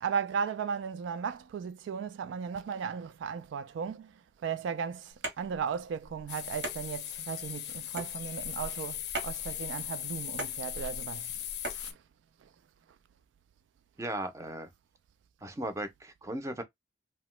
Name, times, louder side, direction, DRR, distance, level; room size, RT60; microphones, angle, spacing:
voice 1, 0.0-4.1 4.4-11.3 11.7-12.0 12.4-12.5, right 6 dB, 85° right, 0.3 m, -36 dB
sound 1, 5.1-11.9, right 2 dB, 65° right, 1.0 m, -42 dB
sound 2, 6.3-11.9, left 11 dB, 60° left, 0.4 m, -39 dB
voice 2, 14.0-14.7 15.4-16.6, right 1 dB, 15° right, 0.5 m, -36 dB
2.8 x 2.1 x 3.0 m
head